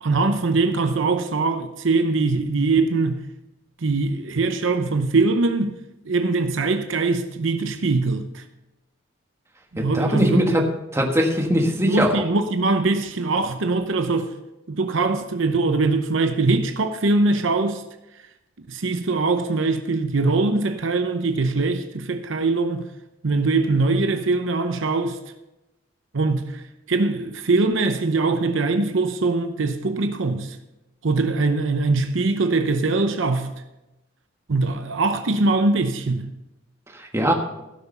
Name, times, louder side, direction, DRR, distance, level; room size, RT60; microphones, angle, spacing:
voice 1, 0.0-3.2 3.8-5.8 6.1-8.4 9.7-10.7 11.8-14.3 14.7-17.8 18.7-22.9 23.2-25.2 26.1-26.6 26.9-30.6 31.0-33.5 34.5-36.3, right 3 dB, 65° right, 0.8 m, -22 dB
voice 2, 9.8-10.7 10.9-12.2 36.9-37.3, equal, 15° right, 1.3 m, -21 dB
16.5 x 6.0 x 5.4 m
head